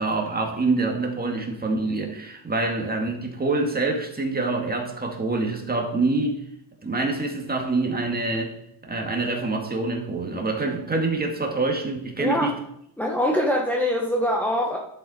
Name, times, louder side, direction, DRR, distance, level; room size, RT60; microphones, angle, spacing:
voice 1, 0.0-6.4 6.8-8.6 8.8-12.6, right 3 dB, 20° right, 2.0 m, -26 dB
voice 2, 13.0-14.8, left 1 dB, 5° left, 1.1 m, -23 dB
11.0 x 7.7 x 4.3 m
cardioid pair, 115°, 46 cm